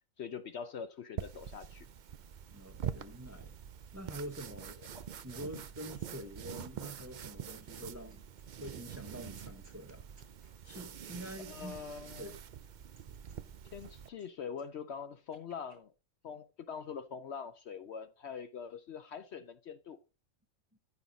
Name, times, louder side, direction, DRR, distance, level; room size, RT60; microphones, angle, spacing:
voice 1, 0.2-1.9 4.8-4.9 11.4-12.3 13.7-15.9 16.2-20.0, left 6 dB, 60° left, 0.8 m, -43 dB
sound 1, 1.2-14.1, right 8 dB, 60° right, 0.5 m, -45 dB
voice 2, 2.5-3.5 3.9-4.8 5.2-8.2 8.6-10.0 10.6-11.8 12.2-12.4, right 1 dB, 15° right, 0.9 m, -46 dB
sound 2, 7.5-7.8 8.1-12.4 12.8-14.3 14.5-15.8, right 2 dB, 85° right, 4.6 m, -68 dB
14.0 x 5.8 x 3.9 m
omnidirectional pair, 1.4 m